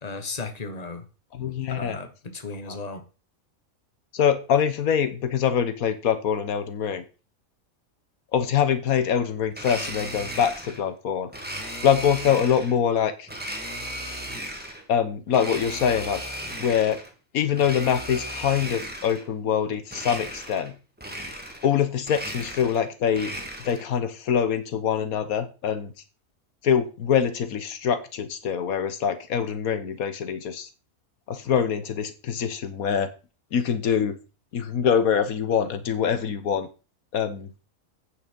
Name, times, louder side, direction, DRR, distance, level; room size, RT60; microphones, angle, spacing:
voice 1, 0.0-1.0 1.8-3.0, left 3 dB, 30° left, 7 dB, 1.5 m, -35 dB
voice 2, 1.3-2.0 2.7-2.8 4.1-7.0 8.3-11.3 11.8-13.3 14.9-16.2 16.6-17.0 17.3-20.7 21.6-23.3 23.6-25.9 26.6-30.7 31.3-33.1 33.5-34.2 34.5-36.7 37.1-37.5, left 8 dB, 90° left, 11 dB, 1.5 m, -24 dB
Domestic sounds home sounds, 9.5-10.8 11.3-12.8 13.3-14.8 15.3-17.1 17.5-19.3 19.9-20.7 21.0-21.7 22.0-23.9, right 1 dB, 5° right, 1.8 m, -36 dB
8.8 x 6.7 x 5.3 m, 0.33 s
omnidirectional pair, 1.5 m